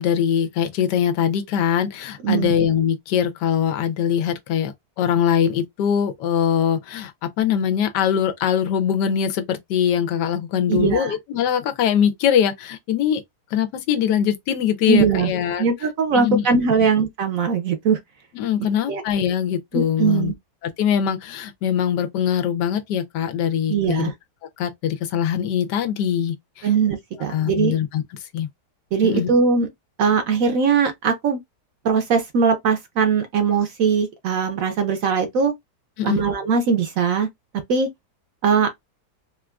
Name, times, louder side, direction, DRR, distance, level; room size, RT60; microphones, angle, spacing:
voice 1, 0.0-7.1 7.4-13.2 13.5-15.7 16.1-16.4 18.3-20.3 20.6-24.1 24.6-26.7 27.3-28.0 28.3-28.5 29.0-29.3 36.0-36.2, left 8 dB, 85° left, 1.2 m, -22 dB
voice 2, 2.2-2.5 10.7-11.1 14.9-15.3 15.6-18.0 18.9-19.0 19.7-20.3 23.7-24.1 26.6-27.7 28.9-29.7 30.0-31.4 31.8-35.5 36.0-37.3 37.7-37.9 38.4-38.7, right 5 dB, 65° right, 0.9 m, -20 dB
3.6 x 2.4 x 2.2 m
omnidirectional pair, 1.8 m